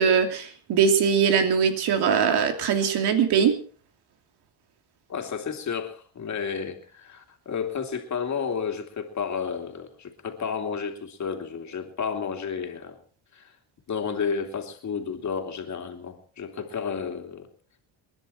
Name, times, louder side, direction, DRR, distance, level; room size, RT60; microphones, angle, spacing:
voice 1, 0.0-3.5, right 7 dB, 70° right, 6 dB, 2.9 m, -21 dB
voice 2, 5.1-13.0 13.3-13.5 13.9-17.5, left 6 dB, 45° left, 4 dB, 3.0 m, -31 dB
28.5 x 11.0 x 4.4 m, 0.42 s
cardioid pair, 115°, 41 cm